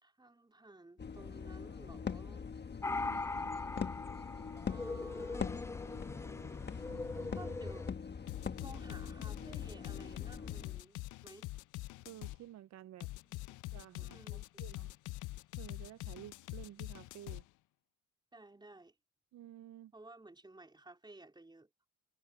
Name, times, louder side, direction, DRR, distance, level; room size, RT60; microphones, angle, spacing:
voice 1, 0.0-2.5 4.7-5.6 7.4-7.9 8.6-11.5 13.2-13.4 14.0-14.6 18.3-18.9 19.9-21.7, right 2 dB, 15° right, 3.9 m, -55 dB
sound 1, 1.0-10.8, left 6 dB, 35° left, 1.3 m, -43 dB
sound 2, 2.8-7.9, left 3 dB, 10° left, 0.3 m, -41 dB
voice 2, 2.9-3.6 6.9-7.6 10.5-10.6 12.0-13.1 13.7-14.2 14.6-14.9 15.6-17.4 19.3-19.9, right 12 dB, 65° right, 0.6 m, -52 dB
sound 3, 8.3-12.4 13.0-17.4, left 18 dB, 80° left, 0.6 m, -44 dB
cardioid pair, 90°, 30 cm